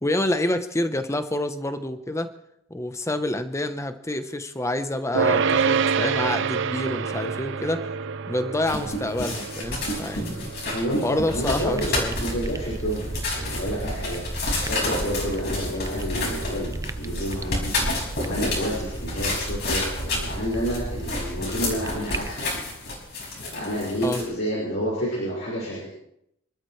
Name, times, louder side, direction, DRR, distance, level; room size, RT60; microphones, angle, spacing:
voice 1, 0.0-2.3 2.7-7.9 8.3-10.5 11.0-12.2 24.0-24.2, left 1 dB, 15° left, 9 dB, 0.9 m, -27 dB
sound 1, 5.1-16.5, right 6 dB, 65° right, 0.6 m, -29 dB
sound 2, 8.6-24.2, left 2 dB, 55° left, 5.2 m, -30 dB
voice 2, 10.7-14.2 14.7-17.8 18.2-22.4 23.5-25.9, equal, 70° left, -5 dB, 5.9 m, -29 dB
sound 3, 11.3-22.5, right 2 dB, 15° right, 0.4 m, -34 dB
27.5 x 13.0 x 3.2 m, 0.78 s
head